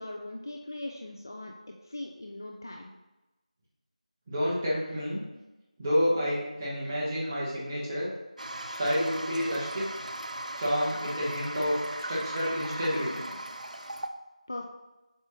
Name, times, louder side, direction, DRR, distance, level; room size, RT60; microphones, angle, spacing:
voice 1, 0.0-1.5 1.8-2.9 14.5-14.7, left 1 dB, 30° left, 1 dB, 0.4 m, -39 dB
voice 2, 4.3-5.2 5.8-8.1 8.8-9.8 10.6-11.8 12.1-13.4, equal, 10° right, -8 dB, 0.9 m, -29 dB
Toilet flush, 8.4-14.1, right 1 dB, 80° right, 0.6 m, -38 dB
7.4 x 4.5 x 3.0 m, 1.0 s
figure-of-eight pair, 175°, 4 cm